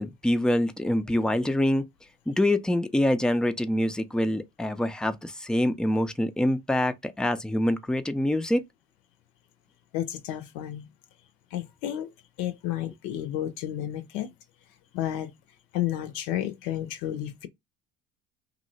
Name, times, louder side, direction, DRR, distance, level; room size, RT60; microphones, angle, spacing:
voice 1, 0.0-1.8 2.3-8.6, left 1 dB, ahead, 0.3 m, -25 dB
voice 2, 9.9-10.9 11.5-12.1 12.4-14.3 14.9-15.3 15.7-17.5, left 12 dB, 80° left, 0.6 m, -31 dB
2.8 x 2.0 x 3.9 m
supercardioid pair, 80°, 36 cm